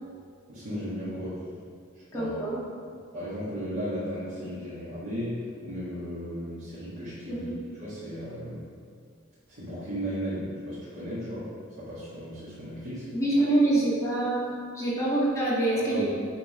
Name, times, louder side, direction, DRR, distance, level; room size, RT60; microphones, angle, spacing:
voice 1, 0.5-1.5 2.1-2.3 3.1-7.5 7.8-8.7 9.5-13.1 15.7-16.0, equal, 65° right, -12 dB, 2.0 m, -35 dB
voice 2, 2.1-2.6 7.3-7.6 13.1-16.0, right 2 dB, 15° left, -8 dB, 1.9 m, -25 dB
8.8 x 3.8 x 5.1 m, 2.2 s
head